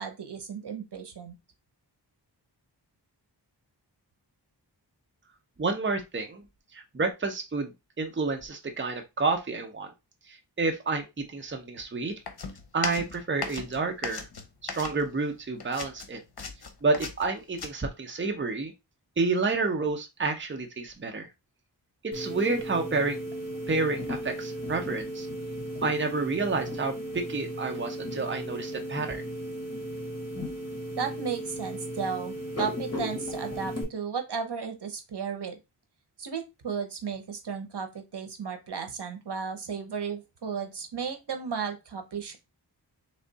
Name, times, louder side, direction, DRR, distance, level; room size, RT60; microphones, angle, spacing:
voice 1, 0.0-1.3 31.0-35.6 36.2-42.4, right 6 dB, 70° right, 7 dB, 1.0 m, -34 dB
voice 2, 5.6-6.4 6.7-7.7 8.0-9.9 10.6-11.0 11.3-12.1 12.7-14.2 14.6-16.2 16.8-18.7 19.2-21.3 22.1-23.2 23.7-25.3 25.8-29.2, right 3 dB, 30° right, 4 dB, 0.8 m, -29 dB
sound 1, 12.3-15.3 15.6-17.7, left 5 dB, 65° left, 0.9 m, -37 dB
sound 2, 22.1-33.8, equal, 35° left, 1.8 m, -35 dB
3.6 x 3.3 x 4.0 m, 0.24 s
wide cardioid pair, 85°, 42 cm